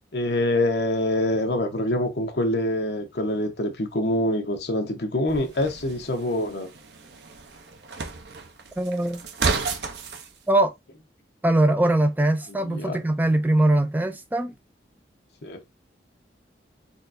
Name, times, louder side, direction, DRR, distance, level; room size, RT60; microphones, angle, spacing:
voice 1, 0.1-6.7 12.5-13.0 15.4-15.6, left 1 dB, 65° left, 1.0 m, -25 dB
sound 1, 5.3-10.3, right 4 dB, 70° right, 0.6 m, -32 dB
voice 2, 8.8-9.2 10.5-10.7 11.4-14.5, right 1 dB, 10° right, 0.4 m, -21 dB
4.0 x 3.2 x 2.5 m
head